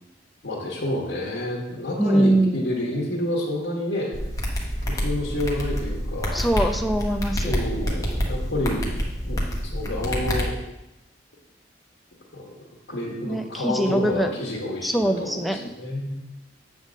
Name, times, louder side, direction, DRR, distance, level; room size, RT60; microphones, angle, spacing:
voice 1, 0.4-4.1 4.8-6.4 7.4-9.4 9.7-10.5 12.3-12.5 12.9-16.2, left 1 dB, 65° left, -5 dB, 1.4 m, -29 dB
voice 2, 2.0-2.7 6.3-7.6 13.3-14.3 14.8-15.7, right 1 dB, ahead, 6 dB, 0.4 m, -23 dB
sound 1, 4.1-10.4, equal, 15° left, 1.0 m, -27 dB
8.1 x 3.6 x 6.3 m, 0.94 s
head